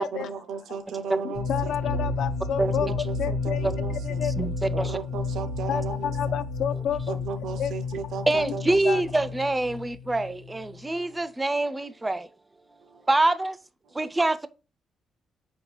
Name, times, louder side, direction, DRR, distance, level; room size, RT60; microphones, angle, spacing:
voice 1, 0.1-2.2 2.6-4.3 4.7-6.4 7.1-9.1, right 6 dB, 75° right, 0.5 m, -36 dB
sound 1, 1.3-11.0, left 4 dB, 90° left, 1.0 m, -31 dB
voice 2, 1.5-2.9 3.2-4.3 5.7-7.2 7.6-7.7 8.4-8.5 8.9-9.0, left 9 dB, 70° left, 0.3 m, -30 dB
voice 3, 2.6-2.9 3.6-3.7 4.4-4.9 8.3-12.2 13.1-13.6 13.9-14.5, right 2 dB, 15° right, 0.3 m, -25 dB
5.2 x 2.3 x 3.1 m
cardioid pair, 90°, 0 cm